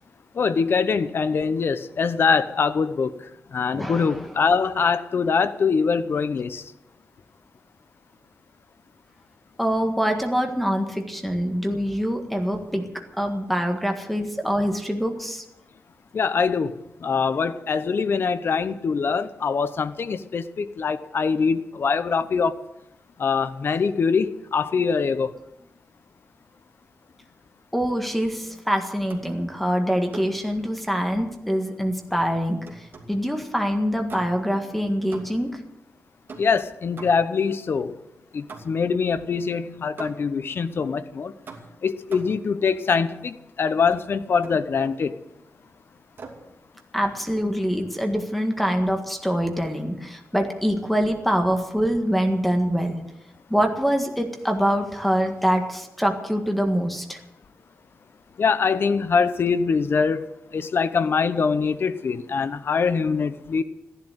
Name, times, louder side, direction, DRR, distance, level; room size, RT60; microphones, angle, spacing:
voice 1, 0.3-3.1 3.5-6.6 16.1-22.6 23.2-25.4 36.4-37.9 38.3-41.3 41.8-45.1 58.4-63.6, left 5 dB, 55° left, 12 dB, 0.9 m, -23 dB
voice 2, 3.7-4.2 9.6-12.9 13.2-15.4 27.7-35.6 46.9-53.0 53.5-57.2, equal, ahead, 4 dB, 1.7 m, -24 dB
sound 1, 29.1-29.4 30.1-30.5 32.1-33.2 34.1-34.6 35.1-35.6 36.3-37.4 38.5-39.0 40.0-40.4 41.5-42.5 43.9-44.1 44.4-45.1 46.2-46.5, right 4 dB, 50° right, 2.7 m, -43 dB
15.5 x 11.0 x 8.0 m, 0.91 s
wide cardioid pair, 140°, 5 cm